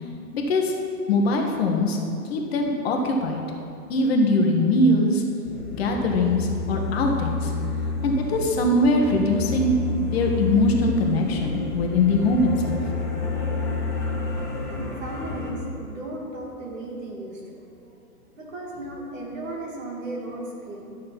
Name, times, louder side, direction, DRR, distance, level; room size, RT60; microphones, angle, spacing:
voice 1, 0.3-0.7 1.1-2.0 2.3-3.4 3.9-5.2 5.8-7.5 8.0-9.8 10.1-12.8, left 2 dB, 40° left, 2 dB, 1.3 m, -22 dB
sound 1, 5.5-15.5, left 3 dB, 5° left, 0.6 m, -29 dB
voice 2, 14.7-17.6 18.3-21.0, right 1 dB, 50° right, -1 dB, 2.8 m, -35 dB
12.0 x 6.5 x 5.9 m, 2.7 s
hypercardioid pair, 135°, 48 cm